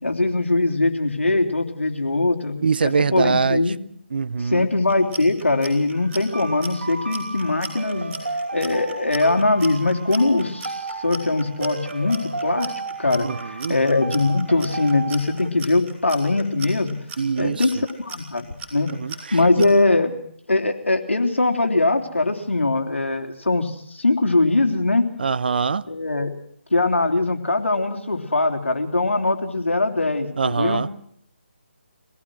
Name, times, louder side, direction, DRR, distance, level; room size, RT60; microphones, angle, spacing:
voice 1, 0.0-3.8 4.4-8.1 8.5-12.7 13.0-17.0 17.4-18.9 19.3-20.1 20.5-25.1 25.9-26.4 26.7-30.8, left 2 dB, 85° left, 3.5 m, -21 dB
voice 2, 2.6-3.6 4.1-4.7 13.2-13.8 17.2-17.6 18.9-19.1 19.6-19.7 25.2-25.8 30.4-30.9, right 5 dB, 50° right, 0.8 m, -23 dB
Clock, 4.8-19.7, right 2 dB, 15° right, 6.2 m, -37 dB
sound 1, 5.9-15.5, right 3 dB, 70° right, 4.4 m, -34 dB
24.0 x 18.5 x 6.3 m
figure-of-eight pair, 155°, 7 cm